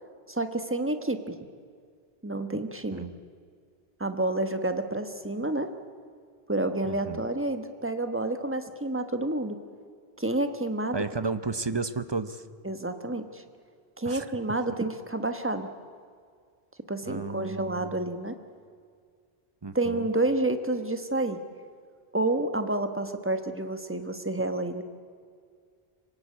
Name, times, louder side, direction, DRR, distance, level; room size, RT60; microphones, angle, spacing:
voice 1, 0.3-1.4 2.2-3.1 4.0-5.7 6.5-9.6 10.2-11.0 12.6-13.4 14.0-15.7 16.9-18.4 19.7-21.4 22.1-24.8, right 2 dB, 10° right, 8 dB, 1.3 m, -29 dB
voice 2, 6.8-7.2 10.9-12.4 14.0-14.3 17.1-18.0 19.6-20.1, right 3 dB, 30° right, 12 dB, 0.7 m, -33 dB
26.0 x 17.5 x 8.7 m, 2.1 s
omnidirectional pair, 1.1 m